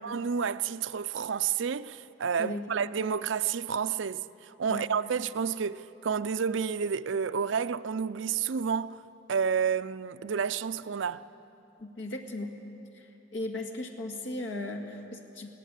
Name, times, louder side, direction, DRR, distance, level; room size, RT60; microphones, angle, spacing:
voice 1, 0.0-9.0 9.3-11.2, right 6 dB, 80° right, 0.5 m, -30 dB
voice 2, 2.4-2.9 4.7-4.8 11.8-12.6 12.9-15.5, left 2 dB, 75° left, 1.9 m, -37 dB
21.0 x 17.5 x 8.2 m
head